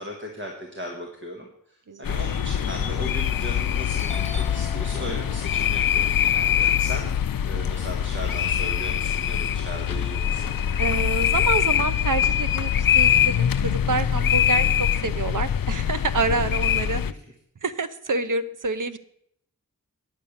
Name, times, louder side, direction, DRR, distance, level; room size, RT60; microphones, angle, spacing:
voice 1, 0.0-7.1 7.4-10.5 14.4-14.7 16.9-17.2, equal, 35° right, 1 dB, 1.6 m, -37 dB
voice 2, 1.9-2.2 10.8-17.0 17.6-19.0, right 3 dB, 65° right, 12 dB, 0.8 m, -27 dB
sound 1, 2.0-17.1, left 9 dB, 85° left, 0.5 m, -23 dB
Doorbell, 3.5-3.7 4.0-8.1 8.5-10.0, left 1 dB, 20° left, 0.9 m, -43 dB
9.7 x 6.7 x 7.2 m, 0.72 s
wide cardioid pair, 60°, 33 cm